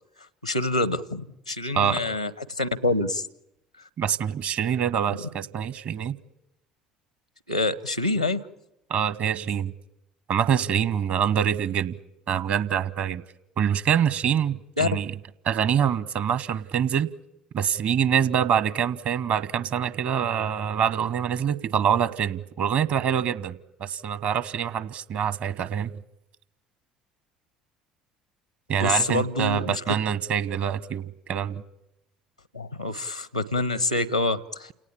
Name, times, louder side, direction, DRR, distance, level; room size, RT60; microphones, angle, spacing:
voice 1, 0.4-3.2 7.5-8.4 14.8-14.9 28.8-29.8 32.5-34.7, left 2 dB, 90° left, 21 dB, 0.9 m, -26 dB
voice 2, 4.0-6.2 8.9-9.7 10.3-11.9 12.3-13.2 13.6-15.2 15.4-17.1 17.5-26.0 28.7-31.6, right 8 dB, 50° right, 19 dB, 1.2 m, -25 dB
29.5 x 18.0 x 8.4 m, 0.84 s
figure-of-eight pair, 60°, 4 cm